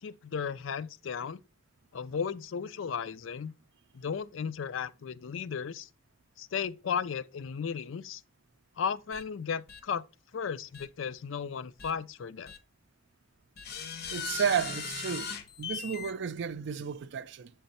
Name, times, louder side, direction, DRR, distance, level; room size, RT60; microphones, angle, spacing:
voice 1, 0.0-1.4 1.9-3.5 3.9-5.9 6.4-8.2 8.8-10.0 10.3-12.5, left 6 dB, 75° left, 0.4 m, -35 dB
sound 1, 9.1-9.2 9.7-9.8 10.7-10.9 11.8-11.9 12.5-12.6 13.6-16.1, left 6 dB, 55° left, 0.8 m, -38 dB
voice 2, 14.1-15.3 15.6-17.5, right 7 dB, 60° right, 0.4 m, -32 dB
7.6 x 3.4 x 4.2 m
head